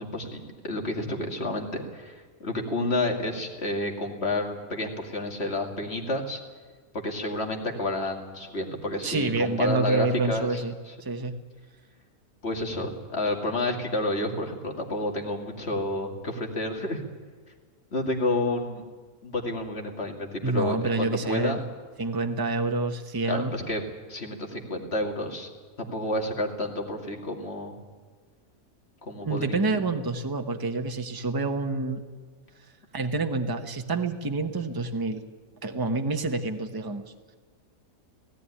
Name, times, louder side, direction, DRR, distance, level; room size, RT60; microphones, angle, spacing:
voice 1, 0.0-6.4 6.9-10.9 12.4-17.0 17.9-18.8 19.2-21.6 23.3-23.8 24.1-25.5 25.8-27.7 29.0-29.6, left 1 dB, 45° left, 2 dB, 2.6 m, -30 dB
voice 2, 9.0-10.7 11.0-11.3 20.4-21.6 22.0-23.5 29.2-32.0 32.9-35.2 35.6-37.1, right 3 dB, 15° right, 5 dB, 1.0 m, -28 dB
17.5 x 16.5 x 9.9 m, 1.5 s
omnidirectional pair, 1.5 m